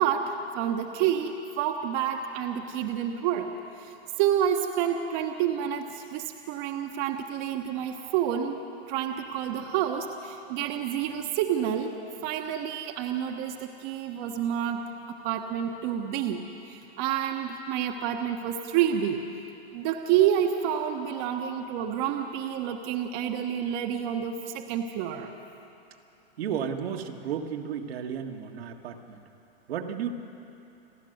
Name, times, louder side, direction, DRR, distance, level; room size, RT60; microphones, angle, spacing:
voice 1, 0.0-3.5 3.8-8.6 8.9-11.9 12.2-19.2 19.7-25.3, right 9 dB, 45° right, 3 dB, 1.3 m, -29 dB
voice 2, 26.4-29.2 29.7-30.1, right 8 dB, 70° right, 3 dB, 1.8 m, -33 dB
29.5 x 11.0 x 7.9 m, 2.8 s
hypercardioid pair, 125°, 31 cm